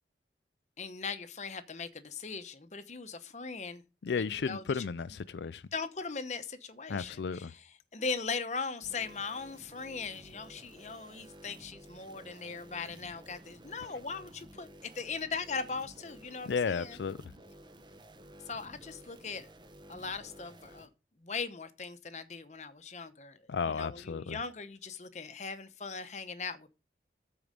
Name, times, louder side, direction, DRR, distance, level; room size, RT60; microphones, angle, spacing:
voice 1, 0.8-3.8 4.2-4.8 5.7-17.0 18.5-19.5 19.9-20.9 21.2-26.7, left 5 dB, 40° left, 0.9 m, -39 dB
voice 2, 4.0-5.6 6.9-7.5 16.5-17.2 23.5-24.4, left 5 dB, 80° left, 0.4 m, -33 dB
sound 1, 8.8-20.9, right 1 dB, 25° right, 0.8 m, -54 dB
13.5 x 4.7 x 5.1 m
head